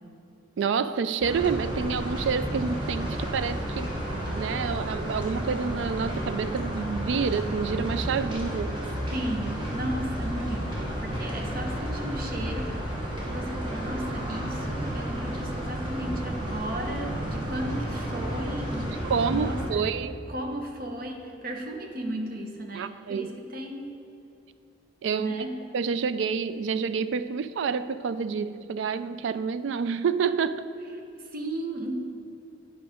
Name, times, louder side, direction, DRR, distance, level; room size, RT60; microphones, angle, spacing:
voice 1, 0.6-8.8 19.0-20.1 22.7-23.3 25.0-25.5 25.7-30.6, right 6 dB, 70° right, 13 dB, 0.3 m, -28 dB
sound 1, 1.2-19.7, equal, 25° right, 1.2 m, -32 dB
voice 2, 9.1-19.0 19.3-20.0 20.3-23.9 25.2-25.5 31.2-31.9, right 1 dB, 45° right, 3 dB, 0.8 m, -35 dB
10.0 x 5.0 x 5.0 m, 2.7 s
head